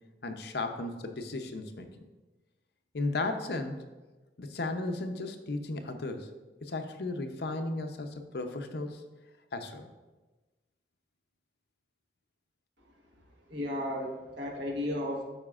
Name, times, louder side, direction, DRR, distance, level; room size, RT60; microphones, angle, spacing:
voice 1, 0.2-1.9 2.9-3.8 4.4-6.3 6.6-9.0 9.5-9.9, left 2 dB, 65° left, 6 dB, 0.6 m, -35 dB
voice 2, 13.5-15.2, left 1 dB, 80° right, 1 dB, 1.3 m, -34 dB
12.0 x 4.9 x 2.4 m, 1.2 s
head